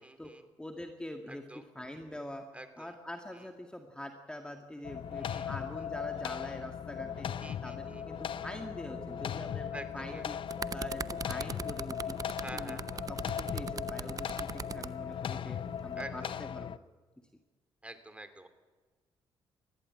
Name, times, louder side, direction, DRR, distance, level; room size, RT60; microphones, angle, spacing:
voice 1, 0.0-0.4 1.3-1.6 2.5-2.9 3.3-3.5 5.2-5.9 7.4-8.0 9.7-10.4 12.4-13.1 16.0-16.3 17.8-18.5, right 1 dB, 10° right, 10 dB, 3.0 m, -48 dB
voice 2, 0.6-1.4 1.8-2.4 2.8-7.3 7.6-10.4 10.7-12.2 12.5-12.8 13.1-16.8, left 1 dB, 10° left, 4 dB, 2.0 m, -44 dB
sound 1, 4.8-16.8, left 9 dB, 60° left, 0.6 m, -38 dB
sound 2, 7.0-16.3, equal, 25° left, 4.0 m, -51 dB
sound 3, 10.2-14.9 15.8-16.0, right 5 dB, 35° right, 0.7 m, -40 dB
20.0 x 14.5 x 9.7 m, 1.3 s
supercardioid pair, 70°, 10 cm